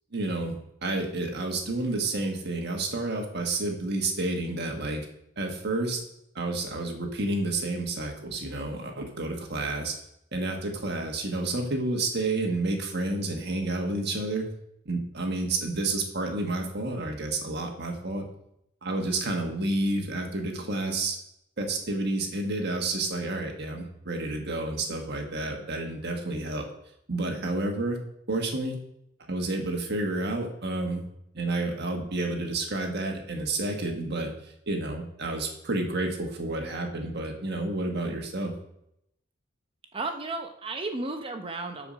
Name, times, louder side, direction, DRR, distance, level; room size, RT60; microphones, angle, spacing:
voice 1, 0.1-5.0 5.4-6.0 6.3-9.9 10.3-14.4 14.8-18.2 18.8-21.2 21.6-26.7 27.1-28.0 28.3-28.8 29.3-31.0 31.3-34.3 34.7-38.5, right 2 dB, 55° right, 2 dB, 1.6 m, -30 dB
voice 2, 39.9-41.9, right 2 dB, 25° right, 6 dB, 0.7 m, -33 dB
10.0 x 5.0 x 6.3 m, 0.79 s
head